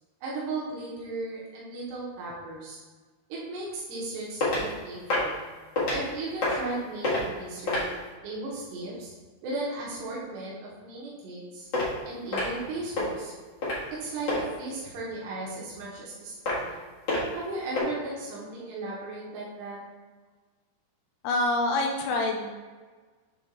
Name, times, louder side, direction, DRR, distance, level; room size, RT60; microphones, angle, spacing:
voice 1, 0.2-2.8 3.3-5.4 5.9-7.8 8.2-9.1 9.4-11.7 12.0-13.3 14.0-16.8 17.3-19.8, right 2 dB, 85° right, -5 dB, 3.1 m, -36 dB
sound 1, 4.4-4.7 5.1-5.3 5.8-6.0 6.4-6.7 7.0-7.3 7.7-7.9 11.7-11.9 12.3-12.6 13.0-13.1 13.6-13.9 14.3-14.4 16.4-16.7 17.1-17.4 17.8-17.9, left 2 dB, 45° left, 1.5 m, -27 dB
voice 2, 21.2-22.6, left 2 dB, 80° left, 2 dB, 2.4 m, -26 dB
8.3 x 3.7 x 3.4 m, 1.4 s
omnidirectional pair, 4.8 m